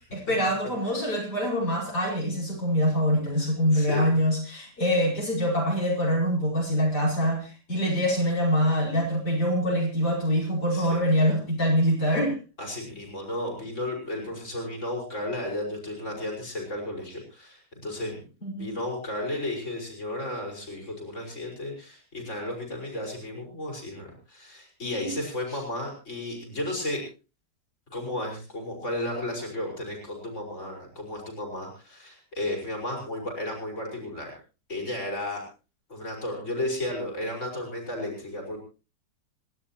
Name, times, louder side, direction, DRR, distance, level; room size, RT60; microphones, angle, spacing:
voice 1, 0.1-12.3 18.4-18.7 25.0-25.1, equal, 70° left, -3 dB, 6.0 m, -24 dB
voice 2, 3.3-4.2 10.7-11.0 12.6-18.2 18.6-27.0 27.9-34.4 34.7-35.5 35.9-38.6, left 1 dB, 40° left, 0 dB, 5.7 m, -33 dB
29.0 x 12.5 x 3.0 m, 0.32 s
omnidirectional pair, 1.8 m